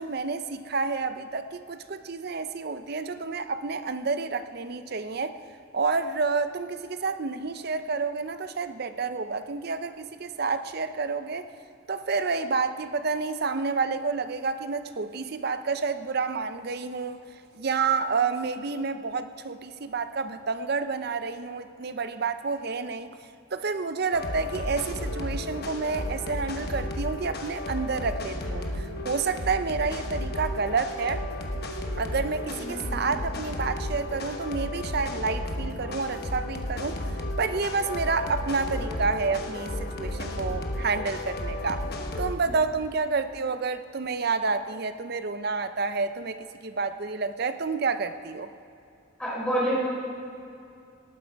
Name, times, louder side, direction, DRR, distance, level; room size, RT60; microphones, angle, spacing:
voice 1, 0.0-5.4 5.7-11.5 11.9-17.2 17.5-23.1 23.5-31.2 32.0-37.0 37.4-41.8 42.2-48.5, right 4 dB, 50° right, 11 dB, 0.6 m, -29 dB
sound 1, 24.1-42.3, left 1 dB, 50° left, 1.1 m, -33 dB
voice 2, 32.5-33.1 49.2-49.8, equal, 5° left, -6 dB, 3.8 m, -29 dB
18.5 x 9.0 x 4.6 m, 2.6 s
head